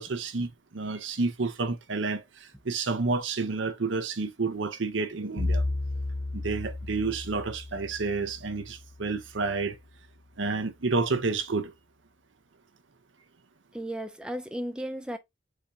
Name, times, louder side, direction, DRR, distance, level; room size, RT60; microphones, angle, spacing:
voice 1, 0.0-5.6 6.3-9.8 10.4-11.7, right 3 dB, 85° right, 0.8 m, -30 dB
Bowed string instrument, 5.4-9.6, left 2 dB, 45° left, 0.5 m, -33 dB
voice 2, 13.7-15.2, right 1 dB, 5° right, 0.5 m, -34 dB
4.9 x 2.8 x 3.5 m
head